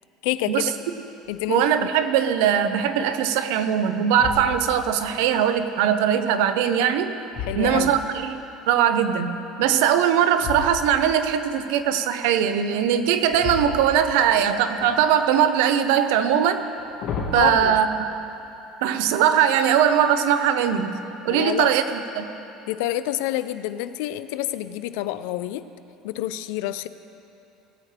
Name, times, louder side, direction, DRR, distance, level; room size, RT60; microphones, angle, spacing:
voice 1, 0.2-0.7 1.3-1.9 7.4-8.0 17.4-17.8 21.3-21.7 22.7-25.7 26.0-26.9, left 14 dB, 80° left, 13 dB, 0.4 m, -28 dB
sound 1, 1.2-1.7 2.2-2.3 2.9-3.5 4.1-5.0 6.6-8.3 10.4-11.2 13.3-14.4 14.8-15.5 16.6-17.5, left 5 dB, 50° left, 2.0 m, -34 dB
voice 2, 1.5-7.2 7.6-8.4 8.7-9.3 9.6-16.6 17.3-17.9 18.8-20.9 21.2-22.3, right 9 dB, 80° right, 9 dB, 0.7 m, -20 dB
19.5 x 8.6 x 3.3 m, 2.8 s
cardioid pair, 155°, 0 cm